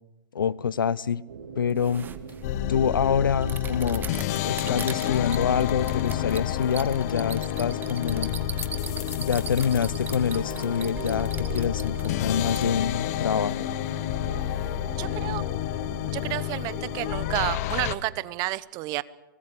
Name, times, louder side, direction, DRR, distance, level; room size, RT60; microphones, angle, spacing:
voice 1, 0.3-1.2 1.6-2.1 2.7-4.1 4.4-8.3 9.1-13.7, left 7 dB, 85° left, 20 dB, 0.9 m, -26 dB
sound 1, 1.3-17.4, right 6 dB, 65° right, 3.5 m, -43 dB
sound 2, 1.7-12.7, right 7 dB, 15° right, 1.5 m, -40 dB
sound 3, 2.4-18.0, left 13 dB, 50° left, 1.2 m, -29 dB
voice 2, 15.0-15.4 16.1-19.0, right 19 dB, 35° right, 19 dB, 1.0 m, -30 dB
24.5 x 19.5 x 8.4 m, 1.1 s
hypercardioid pair, 125°, 11 cm